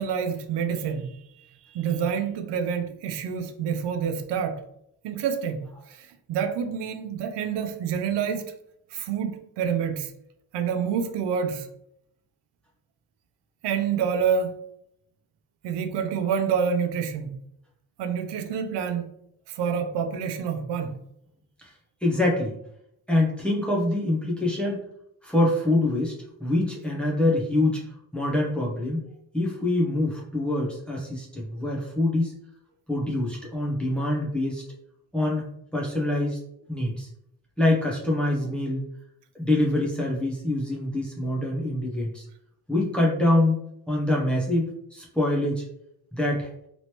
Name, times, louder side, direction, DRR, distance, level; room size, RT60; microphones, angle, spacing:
voice 1, 0.0-4.6 5.0-8.5 8.9-10.1 10.5-11.7 13.6-14.6 15.6-17.4 18.0-19.1 19.5-21.0, right 7 dB, 90° right, 0.6 m, -28 dB
voice 2, 22.0-22.5 23.1-24.8 25.2-26.1 26.4-27.8 28.1-29.0 29.3-32.3 32.9-34.6 35.1-35.5 35.7-36.4 36.7-37.1 37.6-38.9 39.3-42.2 42.7-43.6 43.9-45.6 46.1-46.5, left 1 dB, 5° left, 0.6 m, -25 dB
3.0 x 3.0 x 2.9 m
cardioid pair, 165°, 41 cm